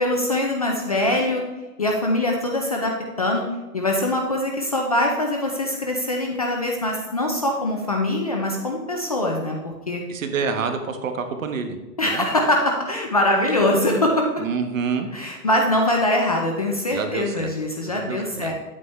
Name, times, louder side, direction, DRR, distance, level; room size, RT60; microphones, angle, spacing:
voice 1, 0.0-1.4 1.8-3.5 3.7-10.0 12.0-14.3 15.1-18.5, left 1 dB, 25° left, 0 dB, 0.5 m, -23 dB
voice 2, 10.1-11.8 12.1-12.3 14.4-15.1 16.9-17.5 17.9-18.5, right 5 dB, 50° right, 6 dB, 1.3 m, -27 dB
9.5 x 8.4 x 3.2 m, 1.1 s
hypercardioid pair, 150°, 48 cm